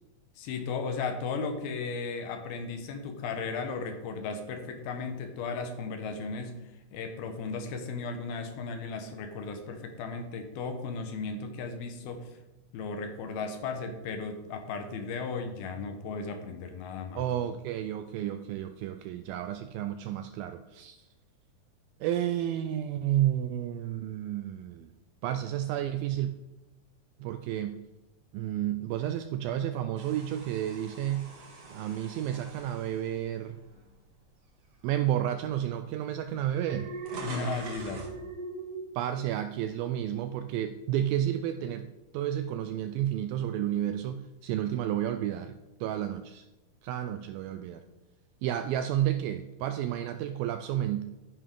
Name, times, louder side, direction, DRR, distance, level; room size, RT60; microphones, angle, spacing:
voice 1, 0.4-6.6 6.9-12.3 12.7-17.2 37.2-38.1, left 4 dB, 75° left, 6 dB, 2.8 m, -35 dB
voice 2, 17.2-21.0 22.0-24.9 25.2-26.3 27.2-27.8 28.3-31.3 31.7-33.6 34.8-36.9 39.0-41.9 42.1-46.5 46.8-47.8 48.4-51.0, right 11 dB, 90° right, 8 dB, 2.0 m, -31 dB
sound 1, 30.0-34.2 34.7-34.9 35.8-35.9 36.1-38.2, right 3 dB, 55° right, 1.2 m, -46 dB
Alarm, 36.5-39.9 40.2-40.6, right 3 dB, 70° right, 3.1 m, -41 dB
11.0 x 10.0 x 3.8 m, 1.0 s
omnidirectional pair, 4.7 m